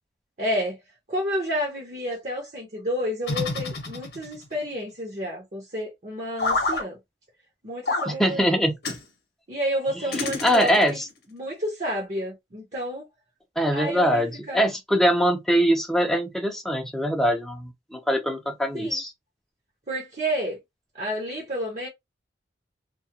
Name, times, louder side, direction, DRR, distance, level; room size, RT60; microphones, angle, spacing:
voice 1, 0.4-0.8 1.1-7.0 7.6-8.5 9.5-11.0 11.3-13.0 13.7-14.6 18.7-19.0 19.9-20.6 20.9-21.9, equal, 40° right, 0.7 m, -30 dB
sound 1, 3.2-4.5 6.4-6.8 7.9-8.1 8.8-9.0 10.1-11.0, left 3 dB, 60° left, 0.8 m, -28 dB
voice 2, 8.1-8.8 10.2-11.0 13.6-19.1, equal, ahead, 0.4 m, -23 dB
2.3 x 2.2 x 2.7 m
head